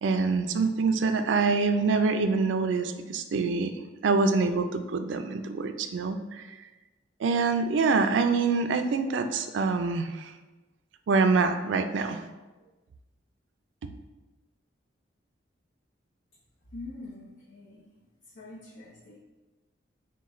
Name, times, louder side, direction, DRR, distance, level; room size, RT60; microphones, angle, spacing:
voice 1, 0.0-3.7 4.0-6.5 7.2-10.3 11.1-12.2, right 4 dB, 85° right, 8 dB, 0.4 m, -25 dB
voice 2, 16.7-17.8 18.3-19.2, left 2 dB, 90° left, -6 dB, 0.7 m, -44 dB
6.2 x 2.2 x 3.1 m, 1.2 s
head